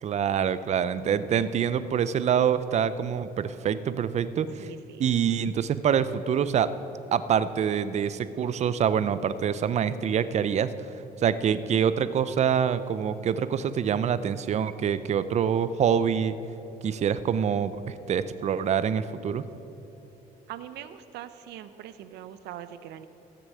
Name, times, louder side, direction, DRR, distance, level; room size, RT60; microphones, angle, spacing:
voice 1, 0.0-4.7 5.0-6.7 7.1-10.7 11.2-16.4 16.8-19.5, right 8 dB, 40° right, 15 dB, 0.5 m, -25 dB
voice 2, 4.6-5.0 20.5-23.1, right 11 dB, 80° right, 12 dB, 0.7 m, -42 dB
14.0 x 6.9 x 7.5 m, 2.9 s
cardioid pair, 110°, 17 cm